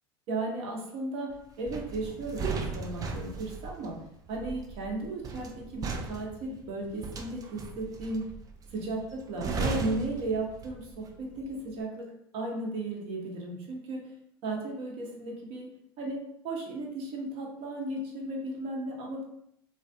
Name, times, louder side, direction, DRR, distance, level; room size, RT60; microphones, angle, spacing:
voice 1, 0.3-4.0 4.3-8.2 8.7-14.1 14.4-15.7 16.0-19.3, right 2 dB, 50° right, -1 dB, 0.8 m, -35 dB
sound 1, 1.7-11.0 11.3-11.6, right 4 dB, 30° right, 0.4 m, -37 dB
2.4 x 2.2 x 2.7 m, 0.74 s
hypercardioid pair, 85°, 12 cm